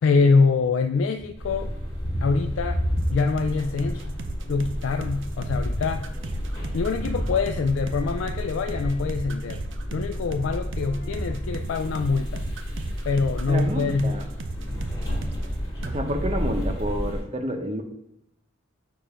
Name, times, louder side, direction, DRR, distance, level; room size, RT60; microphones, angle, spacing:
voice 1, 0.0-1.7 2.2-2.8 3.1-4.1 4.5-6.1 6.7-12.5 13.0-14.2, left 4 dB, 75° left, 6 dB, 0.3 m, -24 dB
Thunder, 1.2-3.6 3.9-8.7 9.8-12.4, equal, 40° left, 1.6 m, -33 dB
sound 1, 1.4-17.2, equal, 20° left, 1.6 m, -32 dB
sound 2, 3.0-15.5 15.8-16.0, right 2 dB, 70° right, 0.6 m, -36 dB
voice 2, 13.5-14.3 15.8-17.8, equal, 30° right, 4 dB, 0.7 m, -29 dB
6.8 x 2.6 x 5.5 m, 0.82 s
head